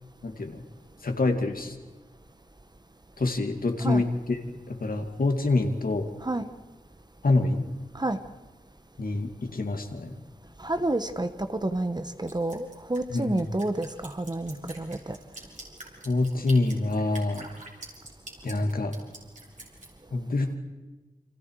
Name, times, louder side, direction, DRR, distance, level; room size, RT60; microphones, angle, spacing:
voice 1, 0.2-0.6 1.0-1.8 3.2-4.4 4.7-6.1 7.2-7.7 9.0-10.1 13.1-13.4 16.0-17.5 18.4-18.9 20.1-20.5, left 2 dB, 65° left, 5 dB, 2.6 m, -26 dB
voice 2, 10.6-11.3 11.6-15.0, right 2 dB, 25° right, 9 dB, 1.3 m, -29 dB
Drip, 12.3-19.9, right 2 dB, 50° right, 6.1 m, -45 dB
30.0 x 25.5 x 4.9 m, 1.2 s
wide cardioid pair, 70°, 16 cm